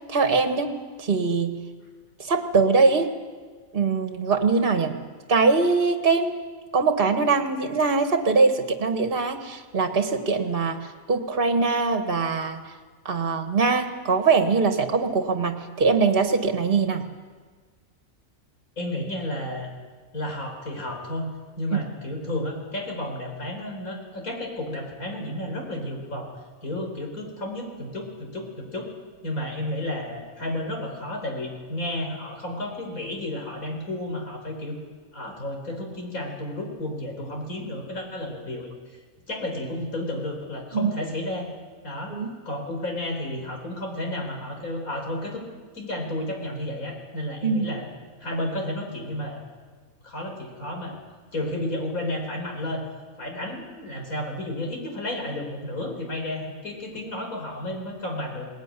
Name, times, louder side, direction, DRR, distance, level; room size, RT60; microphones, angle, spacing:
voice 1, 0.1-0.7 1.0-1.5 2.2-3.1 3.7-5.0 5.3-6.3 6.7-12.8 13.1-17.1 40.7-40.9 42.1-42.3 47.4-47.7, right 4 dB, 40° right, 6 dB, 1.8 m, -22 dB
voice 2, 18.8-19.7 20.1-21.3 21.6-26.3 26.6-28.9 29.2-34.8 35.1-38.7 39.3-41.5 41.8-42.2 42.4-45.4 45.7-47.9 48.2-49.5 50.0-51.0 51.3-52.8 53.2-58.5, left 1 dB, 85° left, 2 dB, 5.1 m, -32 dB
20.5 x 19.5 x 9.9 m, 1.5 s
omnidirectional pair, 1.4 m